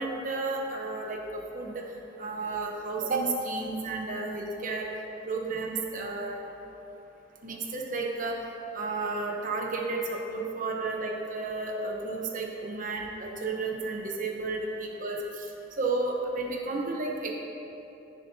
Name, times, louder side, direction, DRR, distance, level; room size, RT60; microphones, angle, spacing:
voice 1, 0.0-1.8 2.2-4.9 5.2-6.4 7.4-8.4 8.7-15.5 15.8-17.4, right 3 dB, 45° right, 0 dB, 1.0 m, -32 dB
14.0 x 6.6 x 2.8 m, 3.0 s
head